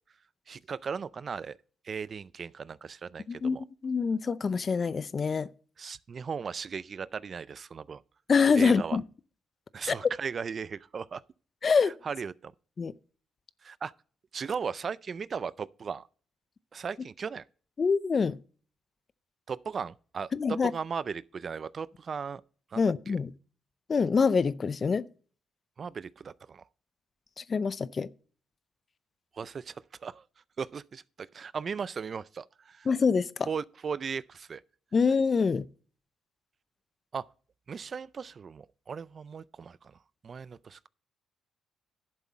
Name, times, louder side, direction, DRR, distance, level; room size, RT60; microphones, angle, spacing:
voice 1, 0.5-1.6 1.8-3.6 5.8-8.0 8.5-9.0 9.7-11.2 11.8-12.5 13.6-13.9 14.3-16.1 16.7-17.5 19.5-22.4 22.7-23.2 25.8-26.6 29.3-30.2 30.6-32.9 33.5-34.6 37.1-37.3 37.7-40.0 40.2-40.9, right 6 dB, 45° right, 0.4 m, -37 dB
voice 2, 3.8-5.5 8.3-9.0 9.9-10.0 11.6-11.9 12.8-12.9 17.8-18.4 20.3-20.7 22.8-23.3 23.9-25.1 27.4-28.1 32.9-33.3 34.9-35.7, left 5 dB, 40° left, 0.5 m, -25 dB
11.0 x 7.3 x 4.3 m
cardioid pair, 90°, 0 cm